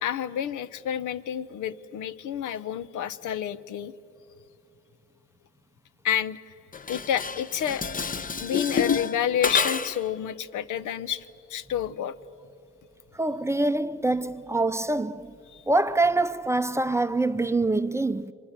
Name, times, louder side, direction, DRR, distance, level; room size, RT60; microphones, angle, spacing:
voice 1, 0.0-3.9 6.0-6.4 6.9-7.8 8.4-12.1 15.5-15.6, left 10 dB, 80° left, 0.8 m, -29 dB
Dishes pots and pans, 6.7-10.1, left 5 dB, 30° left, 0.8 m, -29 dB
voice 2, 13.2-15.3 15.7-18.3, right 2 dB, 10° right, 0.5 m, -25 dB
29.0 x 24.0 x 7.3 m
cardioid pair, 90°, 30 cm